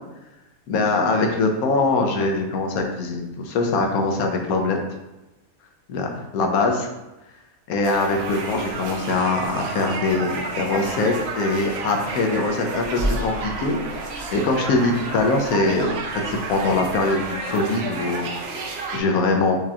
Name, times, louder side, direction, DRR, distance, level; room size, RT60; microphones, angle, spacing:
voice 1, 0.7-4.8 5.9-6.9 7.7-13.8 14.1-15.9 16.3-18.3 18.9-19.6, left 3 dB, 85° left, 3 dB, 1.1 m, -22 dB
sound 1, 7.8-19.0, right 3 dB, 65° right, 0.7 m, -31 dB
sound 2, 12.9-17.6, equal, 55° left, 0.8 m, -34 dB
4.9 x 2.8 x 2.3 m, 1.0 s
omnidirectional pair, 1.5 m